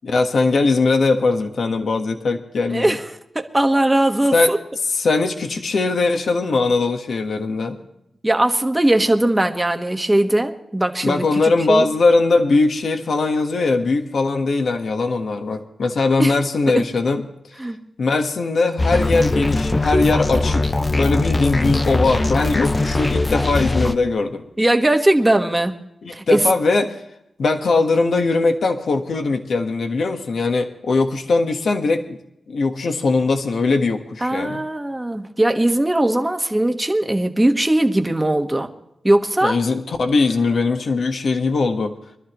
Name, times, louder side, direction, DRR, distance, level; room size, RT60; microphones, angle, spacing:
voice 1, 0.0-3.0 4.3-4.5 4.8-7.8 11.0-17.2 18.0-24.4 26.0-27.0 27.4-32.2 32.5-34.6 39.4-41.9, left 3 dB, 60° left, 5 dB, 1.3 m, -20 dB
voice 2, 2.7-3.0 3.3-4.6 8.2-11.9 16.2-16.3 17.6-17.8 24.6-25.8 26.1-26.4 34.2-38.7 39.0-39.6, right 1 dB, 10° right, 5 dB, 1.3 m, -19 dB
sound 1, 18.8-23.9, left 2 dB, 20° left, 0.7 m, -20 dB
24.0 x 13.0 x 3.0 m, 0.82 s
wide cardioid pair, 130°, 0 cm